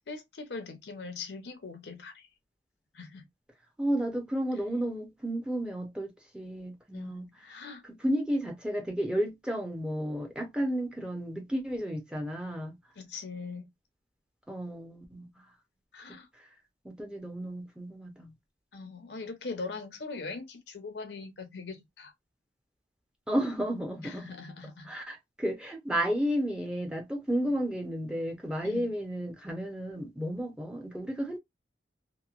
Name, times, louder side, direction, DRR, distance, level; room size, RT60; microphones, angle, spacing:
voice 1, 0.1-2.3 2.9-3.3 6.9-7.8 13.0-13.7 15.9-16.3 18.7-22.1 24.0-24.9 28.6-28.9, left 4 dB, 70° left, 0.6 m, -41 dB
voice 2, 3.8-12.8 14.5-15.5 16.1-16.5 16.8-18.3 23.3-24.3 24.8-31.4, equal, 5° right, 0.5 m, -33 dB
2.9 x 2.0 x 2.4 m
head